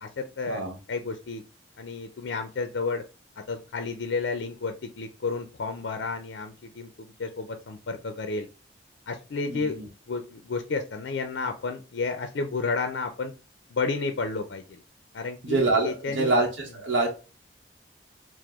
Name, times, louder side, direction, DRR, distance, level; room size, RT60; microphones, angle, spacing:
voice 1, 0.0-1.4 1.8-3.0 3.5-8.5 9.1-13.3 13.7-14.8 15.1-16.3, left 4 dB, 70° left, 7 dB, 0.4 m, -31 dB
voice 2, 9.5-9.9 15.4-17.1, right 2 dB, 85° right, -1 dB, 0.8 m, -25 dB
4.7 x 2.0 x 3.5 m, 0.32 s
head